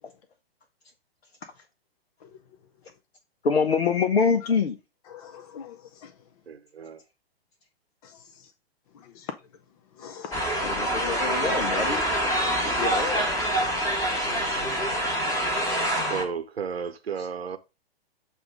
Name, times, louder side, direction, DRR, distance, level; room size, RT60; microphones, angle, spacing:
voice 1, 3.4-4.8 10.6-12.0 12.6-13.3 17.2-17.3, left 5 dB, 70° left, 0.8 m, -25 dB
voice 2, 5.1-5.8 6.0-6.1 9.2-9.3 10.0-10.8 13.4-13.5 15.5-15.7, left 7 dB, 35° left, 0.5 m, -42 dB
voice 3, 6.5-7.0 16.1-17.6, right 6 dB, 75° right, 0.8 m, -33 dB
sound 1, 10.3-16.2, right 1 dB, 10° left, 1.4 m, -26 dB
7.9 x 2.6 x 4.9 m
figure-of-eight pair, 115°, 31 cm